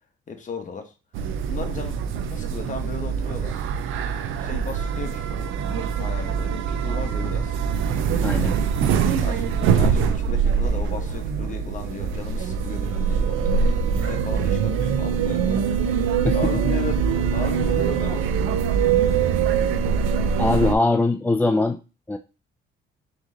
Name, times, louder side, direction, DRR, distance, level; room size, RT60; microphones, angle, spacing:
voice 1, 0.3-0.9 1.5-1.9 2.3-3.6 4.4-7.6 8.9-15.6 16.3-18.3 19.5-19.7, left 5 dB, 40° left, 6 dB, 1.0 m, -36 dB
sound 1, 1.1-20.7, right 6 dB, 90° right, 0.5 m, -23 dB
voice 2, 8.2-8.6 16.2-16.4 16.6-16.7 20.4-21.8 22.1-22.2, left 2 dB, 10° left, 7 dB, 0.3 m, -21 dB
3.6 x 3.2 x 3.8 m, 0.31 s
cardioid pair, 90°, 20 cm